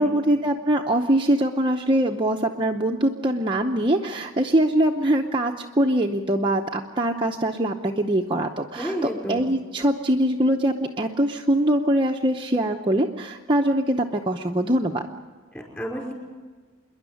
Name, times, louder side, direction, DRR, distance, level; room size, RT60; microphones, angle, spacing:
voice 1, 0.0-15.0, right 1 dB, 25° right, 1 dB, 0.8 m, -23 dB
voice 2, 8.8-9.5 15.5-16.1, equal, 10° left, -1 dB, 5.1 m, -31 dB
27.0 x 11.0 x 9.9 m, 1.5 s
head